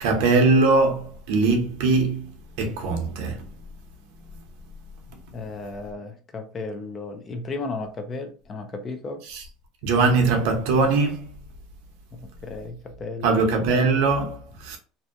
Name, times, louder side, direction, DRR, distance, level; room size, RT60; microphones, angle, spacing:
voice 1, 0.0-2.3 2.6-3.4 9.8-11.2 13.2-14.8, right 3 dB, 70° right, 0.7 m, -21 dB
voice 2, 5.3-9.2 12.1-13.4, left 3 dB, 25° left, 0.4 m, -34 dB
2.6 x 2.1 x 2.5 m
cardioid pair, 145°, 0 cm